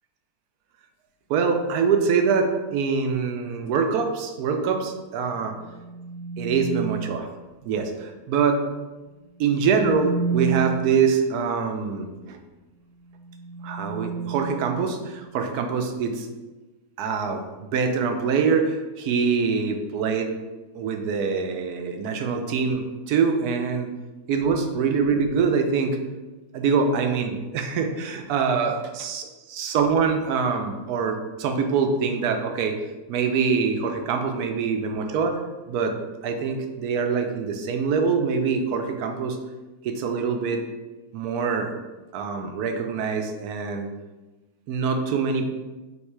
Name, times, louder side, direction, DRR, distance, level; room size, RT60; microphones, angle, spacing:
voice 1, 1.3-5.6 6.4-7.3 7.6-8.6 9.4-12.4 13.6-16.3 17.0-17.4 17.7-20.3 20.7-23.9 24.3-26.0 26.5-32.8 33.1-35.4 35.7-35.9 36.2-39.4 39.8-40.6 41.1-41.7 42.1-43.9 44.7-45.5, right 5 dB, 75° right, 5 dB, 1.0 m, -24 dB
sound 1, 5.3-7.1 9.3-11.0 12.9-15.3, right 6 dB, 65° left, 1.4 m, -31 dB
3.6 x 3.1 x 4.5 m, 1.2 s
omnidirectional pair, 1.7 m